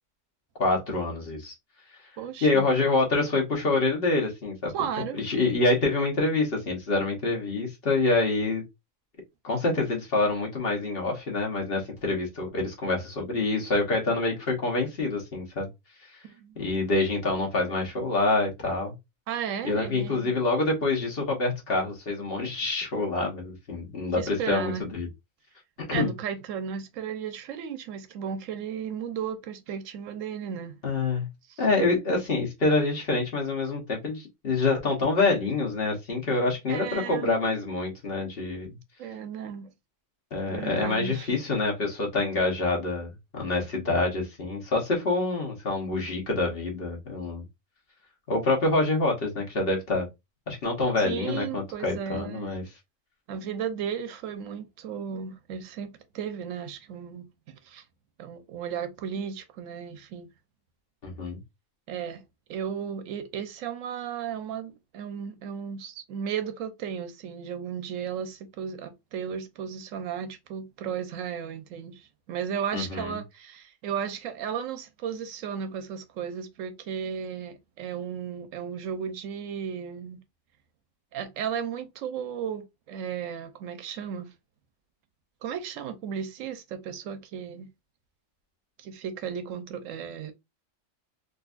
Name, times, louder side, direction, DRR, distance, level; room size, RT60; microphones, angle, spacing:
voice 1, 0.6-1.5 2.4-4.7 5.1-8.6 9.4-15.7 16.6-18.9 19.6-25.1 25.8-26.1 30.8-31.3 31.6-38.8 40.3-47.4 48.3-50.1 50.5-52.6 61.0-61.4 72.7-73.2, left 3 dB, 50° left, 1.2 m, -26 dB
voice 2, 2.2-2.7 4.7-5.2 16.2-16.6 19.3-20.3 24.2-24.9 25.9-30.8 31.5-31.7 36.7-37.3 39.0-39.7 40.4-41.3 51.0-52.6 53.3-57.8 58.2-60.3 61.9-62.2 62.5-80.2 81.1-84.3 85.4-87.7 88.8-90.3, right 7 dB, 80° right, 1.0 m, -35 dB
3.8 x 2.7 x 2.4 m
omnidirectional pair, 1.3 m